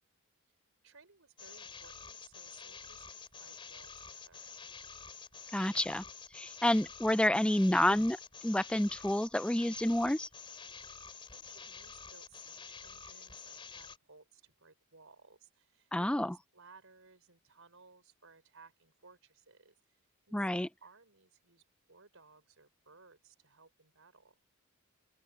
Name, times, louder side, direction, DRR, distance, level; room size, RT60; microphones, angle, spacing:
voice 1, 0.8-4.5 11.1-20.0 20.3-21.6 21.9-24.4, right 4 dB, 60° right, 6.0 m, -61 dB
sound 1, 1.4-14.0, left 5 dB, 25° left, 3.3 m, -49 dB
voice 2, 5.5-6.0 6.3-8.2 8.4-10.3 15.9-16.3 20.3-20.7, left 1 dB, 5° left, 0.4 m, -29 dB
open air
head